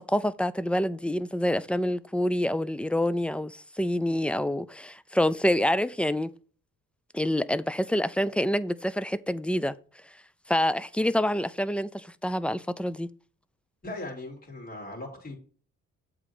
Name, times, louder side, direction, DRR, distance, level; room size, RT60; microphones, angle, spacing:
voice 1, 0.0-6.3 7.1-9.8 10.5-13.1, left 1 dB, 5° left, 0.4 m, -27 dB
voice 2, 13.8-15.4, left 2 dB, 30° left, 3.5 m, -38 dB
8.0 x 3.8 x 6.0 m
cardioid pair, 90°, 30 cm